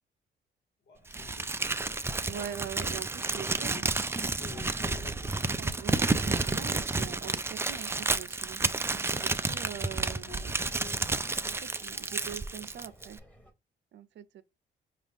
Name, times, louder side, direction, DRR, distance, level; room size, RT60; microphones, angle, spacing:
voice 1, 0.9-1.8 3.4-3.8 4.2-5.3 10.3-11.1, left 5 dB, 70° left, 1.1 m, -49 dB
Crumpling crinkling, 1.1-13.2, right 3 dB, 10° right, 0.3 m, -31 dB
voice 2, 2.3-3.9 5.6-8.6 8.9-10.6 11.5-13.2 13.9-14.4, right 9 dB, 65° right, 0.6 m, -43 dB
sound 1, 3.3-13.5, equal, 10° left, 1.1 m, -55 dB
5.1 x 2.4 x 3.4 m
cardioid pair, 90°, 20 cm